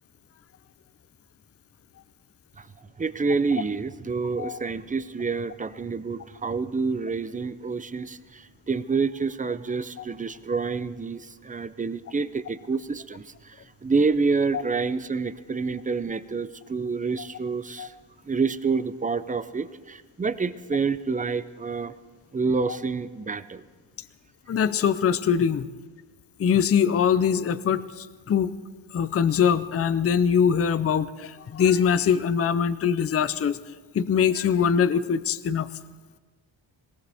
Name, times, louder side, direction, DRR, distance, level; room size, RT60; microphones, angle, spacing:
voice 1, 3.0-13.5 13.8-17.9 18.3-21.9 22.3-23.6, right 4 dB, 20° right, 13 dB, 0.4 m, -28 dB
voice 2, 24.5-25.7 26.4-28.5 28.9-33.6 33.9-35.7, left 7 dB, 30° left, 14 dB, 0.5 m, -22 dB
20.0 x 18.5 x 3.5 m, 1.4 s
wide cardioid pair, 130°, 46 cm